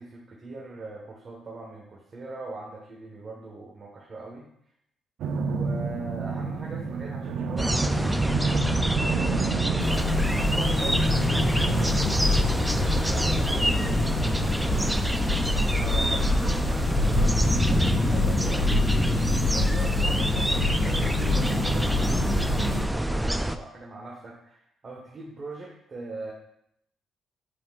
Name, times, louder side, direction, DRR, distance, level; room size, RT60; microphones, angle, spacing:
voice 1, 0.0-4.5 5.5-9.6 10.1-11.6 12.1-15.0 15.5-18.7 19.4-22.5 22.9-26.3, right 2 dB, 40° right, -3 dB, 1.4 m, -41 dB
sound 1, 5.2-12.0, right 4 dB, 75° right, 0.6 m, -29 dB
sound 2, 7.6-23.6, right 1 dB, 5° right, 0.4 m, -26 dB
sound 3, 9.8-22.8, left 3 dB, 85° left, 1.4 m, -26 dB
8.6 x 4.5 x 2.5 m, 0.71 s
cardioid pair, 90°, 0 cm